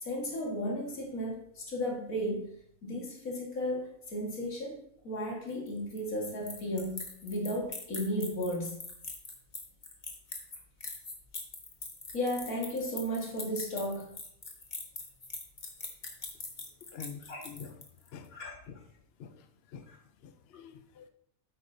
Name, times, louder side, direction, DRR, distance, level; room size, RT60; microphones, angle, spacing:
voice 1, 0.0-2.5 2.8-4.8 5.0-8.8 12.1-14.1 17.3-17.4 18.3-18.6 19.9-20.0, equal, 85° left, -2 dB, 2.3 m, -34 dB
sound 1, 5.5-18.1, left 3 dB, 35° left, 1.3 m, -42 dB
voice 2, 16.9-17.8 18.1-18.3 18.7-18.8 19.2-19.9 20.2-21.1, left 6 dB, 60° left, 9 dB, 0.7 m, -47 dB
8.6 x 8.5 x 2.7 m, 0.70 s
omnidirectional pair, 1.4 m